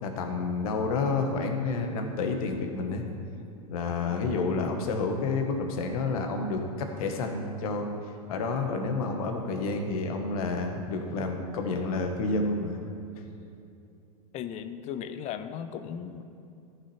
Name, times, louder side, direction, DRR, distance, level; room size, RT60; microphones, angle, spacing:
voice 1, 0.0-3.1 3.7-7.9 8.3-12.8 13.1-13.2, left 3 dB, 65° left, 3 dB, 1.3 m, -29 dB
voice 2, 14.3-16.2, left 8 dB, 35° left, 11 dB, 0.6 m, -37 dB
14.0 x 6.2 x 3.3 m, 2.7 s
hypercardioid pair, 100°, 20 cm